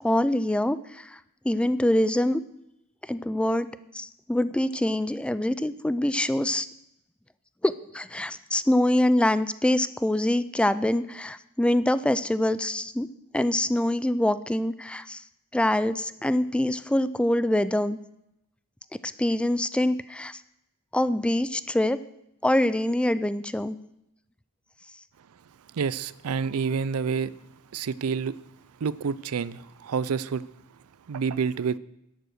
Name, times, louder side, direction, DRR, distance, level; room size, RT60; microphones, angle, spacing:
voice 1, 0.0-1.2 1.4-2.4 3.0-3.7 3.9-6.7 7.6-13.1 13.3-15.2 15.5-18.0 19.0-20.4 20.9-22.0 22.4-23.8, left 1 dB, 5° left, 0.3 m, -25 dB
voice 2, 25.7-27.3 27.7-28.4 28.8-30.5 31.1-31.8, right 6 dB, 80° right, 0.4 m, -28 dB
11.0 x 7.9 x 6.4 m
head